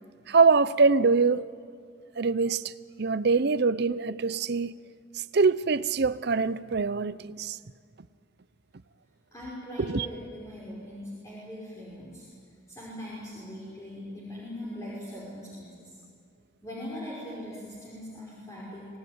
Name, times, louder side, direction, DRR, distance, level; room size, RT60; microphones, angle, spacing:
voice 1, 0.3-1.4 2.2-2.7 3.0-4.7 5.1-7.6 9.8-10.1, right 4 dB, 55° right, 0.7 m, -24 dB
voice 2, 9.3-12.3 12.7-16.0 16.6-18.9, left 1 dB, 15° left, 5.2 m, -40 dB
25.5 x 18.5 x 9.6 m
head